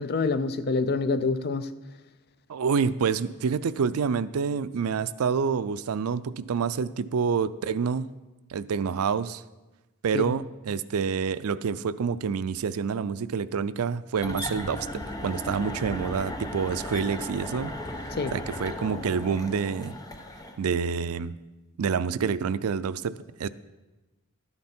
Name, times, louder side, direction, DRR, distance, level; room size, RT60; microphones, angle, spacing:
voice 1, 0.0-1.7 10.1-10.4 18.1-18.4, left 3 dB, 50° left, 0.5 m, -27 dB
voice 2, 2.5-8.1 8.5-9.4 10.0-17.7 18.3-19.9 20.6-21.3 21.8-23.5, right 6 dB, 80° right, 0.4 m, -27 dB
sound 1, 14.1-20.6, left 1 dB, 15° left, 0.8 m, -36 dB
12.0 x 9.6 x 4.4 m
head